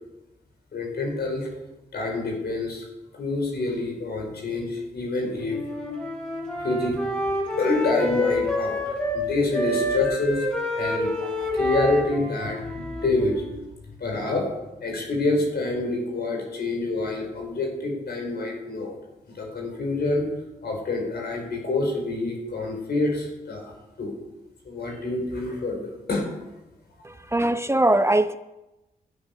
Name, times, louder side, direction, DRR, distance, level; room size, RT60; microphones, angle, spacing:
voice 1, 0.7-1.5 1.9-2.8 3.1-5.6 6.6-7.1 7.6-10.4 10.7-13.4 14.0-14.5 14.8-18.9 19.3-20.3 20.6-23.7 24.0-24.1 24.6-26.3, left 2 dB, 70° left, 0 dB, 5.1 m, -27 dB
Wind instrument woodwind instrument, 5.5-9.2 9.5-13.6, left 1 dB, 5° left, 5.9 m, -28 dB
voice 2, 27.0-28.4, right 1 dB, 15° right, 10 dB, 0.7 m, -21 dB
12.0 x 8.8 x 6.8 m, 0.99 s
supercardioid pair, 50°, 18 cm